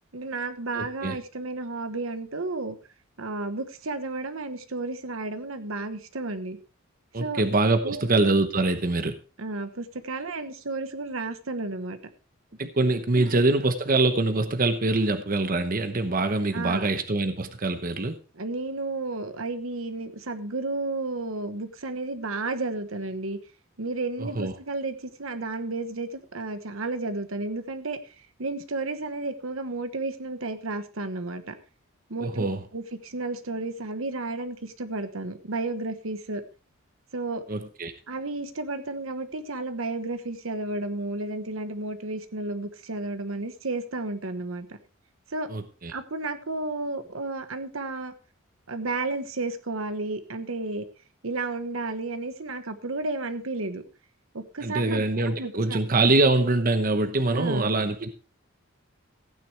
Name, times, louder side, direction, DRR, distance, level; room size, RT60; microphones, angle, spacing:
voice 1, 0.1-2.8 3.2-6.6 7.2-7.4 7.8-8.0 9.4-12.0 13.1-13.5 16.5-16.9 18.3-23.4 23.8-28.0 28.4-31.6 32.1-36.4 37.1-37.4 38.1-44.8 45.3-45.5 45.9-48.1 48.7-50.8 51.2-53.8 54.3-56.1 57.3-57.7, right 2 dB, 80° right, 1.2 m, -32 dB
voice 2, 0.8-1.2 7.1-9.2 12.6-18.2 24.2-24.5 32.2-32.6 37.5-37.9 45.5-45.9 54.6-58.2, right 2 dB, 45° right, 1.0 m, -24 dB
15.0 x 9.5 x 3.3 m
head